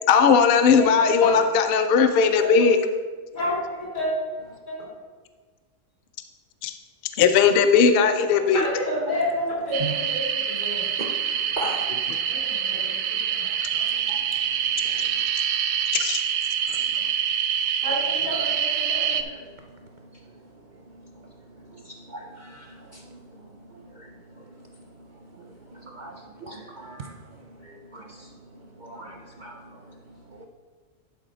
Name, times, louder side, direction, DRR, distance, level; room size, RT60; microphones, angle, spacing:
voice 1, 0.1-2.8 6.6-6.7 7.2-8.6 15.9-16.2, left 6 dB, 60° left, 8 dB, 0.6 m, -18 dB
voice 2, 0.8-1.4 2.4-2.5 3.3-4.2 4.7-4.8 8.3-10.8 12.2-13.5 17.8-19.2, left 1 dB, 80° left, -6 dB, 3.3 m, -29 dB
sound 1, 9.7-19.2, right 8 dB, 80° right, 1.0 m, -26 dB
voice 3, 11.6-11.9 13.7-14.2 14.9-15.0 22.1-22.7 22.9-23.0 25.9-26.1 26.4-27.1 27.9-28.3 28.8-29.6, right 1 dB, 55° right, 2 dB, 0.5 m, -37 dB
11.0 x 4.9 x 3.8 m, 1.4 s
omnidirectional pair, 1.4 m